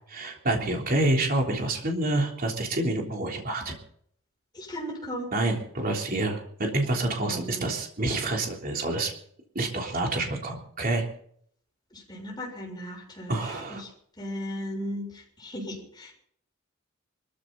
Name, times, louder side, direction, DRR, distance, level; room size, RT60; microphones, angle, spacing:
voice 1, 0.1-3.8 5.3-9.1 9.6-11.1 13.3-13.8, right 2 dB, 45° right, 1 dB, 3.4 m, -27 dB
voice 2, 4.5-5.3 7.2-7.7 11.9-13.9 14.2-16.1, equal, 20° left, -1 dB, 6.9 m, -37 dB
24.0 x 14.0 x 4.1 m, 0.63 s
head